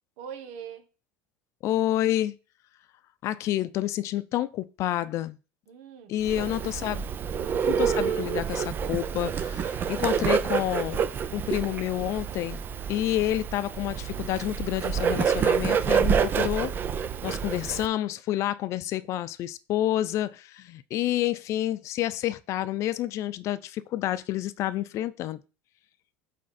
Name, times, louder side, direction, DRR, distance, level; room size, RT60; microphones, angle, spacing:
voice 1, 0.2-0.8 5.7-7.1, right 7 dB, 80° right, 1.4 m, -43 dB
voice 2, 1.6-2.4 3.2-5.4 6.1-7.1 7.7-11.0 11.3-12.6 12.9-16.7 17.2-25.4, left 13 dB, 50° left, 0.6 m, -29 dB
Bird, 6.2-17.9, right 7 dB, 35° right, 0.6 m, -28 dB
8.6 x 3.7 x 4.3 m
supercardioid pair, 120°, 6 cm